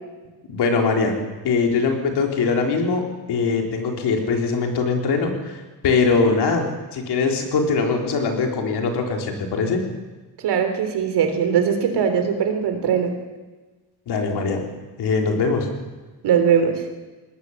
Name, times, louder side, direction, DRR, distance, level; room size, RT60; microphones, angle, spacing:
voice 1, 0.5-1.2 1.4-5.6 5.8-6.7 6.9-9.8 14.1-14.6 15.0-15.7, left 4 dB, 80° left, 2 dB, 4.0 m, -21 dB
voice 2, 10.4-13.1 16.2-16.7, right 7 dB, 80° right, 6 dB, 3.5 m, -20 dB
21.0 x 18.5 x 7.4 m, 1.2 s
cardioid pair, 175°, 40 cm